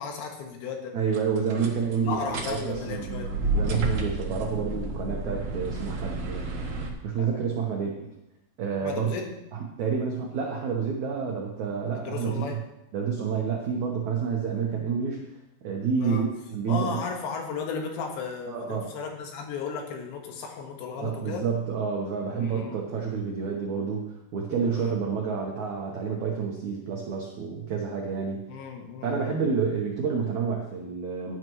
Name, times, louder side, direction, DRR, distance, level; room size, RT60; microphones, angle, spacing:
voice 1, 0.0-1.0 2.0-3.3 7.2-7.4 8.8-9.4 11.9-12.6 16.0-16.3 16.7-21.5 22.4-22.9 24.6-25.1 28.5-29.3, left 5 dB, 85° left, 2 dB, 3.7 m, -35 dB
voice 2, 0.9-6.4 7.0-7.9 8.6-9.1 9.5-12.6 12.9-15.2 15.6-17.0 18.5-18.9 21.0-24.0 24.3-28.4 29.0-31.4, right 6 dB, 80° right, 0 dB, 1.6 m, -29 dB
sound 1, 1.1-6.9, right 2 dB, 60° right, 1.7 m, -31 dB
15.5 x 9.1 x 3.1 m, 0.87 s
omnidirectional pair, 5.0 m